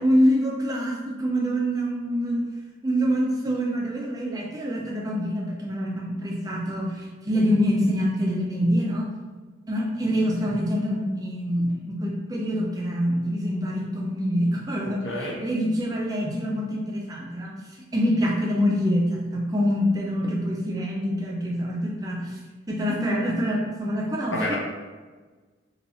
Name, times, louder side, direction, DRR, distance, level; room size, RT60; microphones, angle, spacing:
voice 1, 0.0-2.5 2.8-9.1 9.7-17.5 17.9-22.4 22.7-24.6, equal, 20° right, -2 dB, 0.3 m, -25 dB
voice 2, 15.0-15.4 24.3-24.6, left 1 dB, 70° left, -4 dB, 0.9 m, -28 dB
2.7 x 2.2 x 4.1 m, 1.4 s
head